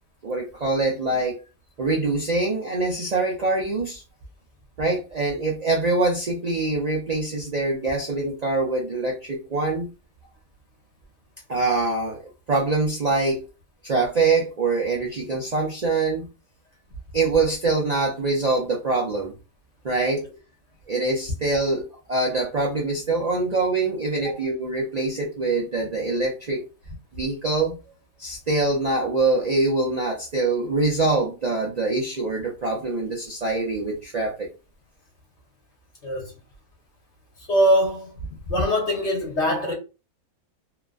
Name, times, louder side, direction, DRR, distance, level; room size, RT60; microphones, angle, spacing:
voice 1, 0.2-1.4 1.8-4.0 4.8-9.9 11.5-12.2 12.5-13.4 13.8-16.3 17.1-19.3 19.8-20.2 20.9-21.8 22.1-26.6 27.1-27.7 28.2-34.5, right 3 dB, 80° right, 0.3 m, -24 dB
voice 2, 37.5-38.1 38.5-39.7, equal, 55° left, 1.1 m, -22 dB
2.8 x 2.5 x 2.2 m
omnidirectional pair, 1.6 m